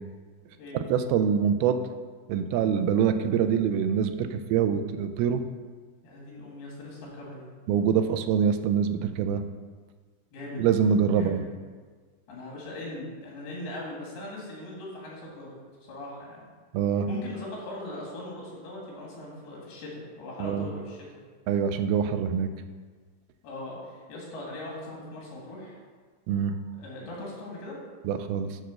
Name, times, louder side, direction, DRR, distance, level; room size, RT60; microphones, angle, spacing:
voice 1, 0.9-1.8 2.3-5.4 7.7-9.4 10.6-11.4 16.7-17.1 20.4-20.7 21.5-22.5 26.3-26.5 28.0-28.6, right 7 dB, 85° right, 9 dB, 2.5 m, -25 dB
voice 2, 6.0-7.5 10.3-10.6 11.1-11.4 12.3-15.6 15.9-16.4 17.1-21.2 23.4-25.8 26.8-27.8, left 2 dB, 80° left, -3 dB, 4.3 m, -40 dB
10.0 x 4.5 x 6.4 m, 1.5 s
omnidirectional pair, 4.4 m